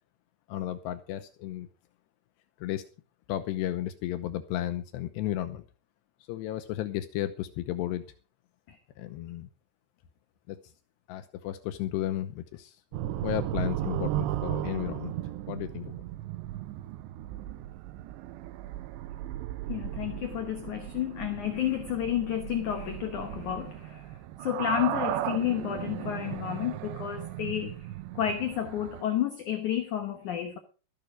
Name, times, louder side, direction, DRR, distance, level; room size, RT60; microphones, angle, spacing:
voice 1, 0.5-1.7 2.6-2.8 3.3-5.6 6.3-8.1 9.0-9.5 10.5-10.6 11.1-12.8 13.2-15.2 15.5-16.0, left 12 dB, 85° left, 3.0 m, -33 dB
sound 1, 12.9-29.0, right 13 dB, 90° right, 3.1 m, -36 dB
voice 2, 19.7-24.0 24.4-27.8 28.2-30.6, left 11 dB, 65° left, 2.0 m, -31 dB
13.5 x 11.0 x 5.0 m
omnidirectional pair, 5.0 m